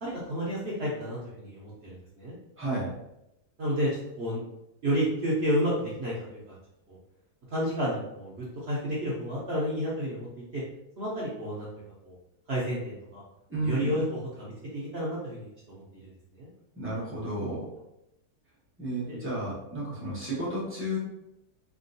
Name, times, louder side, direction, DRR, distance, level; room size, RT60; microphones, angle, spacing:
voice 1, 0.0-2.4 3.6-3.9 4.2-4.4 4.8-6.5 6.9-7.0 7.5-10.6 11.0-11.7 12.0-12.2 12.5-13.2 13.5-16.5 19.1-19.2, equal, 60° right, -6 dB, 0.7 m, -31 dB
voice 2, 2.6-2.9 13.5-13.9 16.8-17.7 18.8-21.0, right 1 dB, 20° right, -8 dB, 0.4 m, -32 dB
3.4 x 2.2 x 2.6 m, 0.86 s
omnidirectional pair, 1.9 m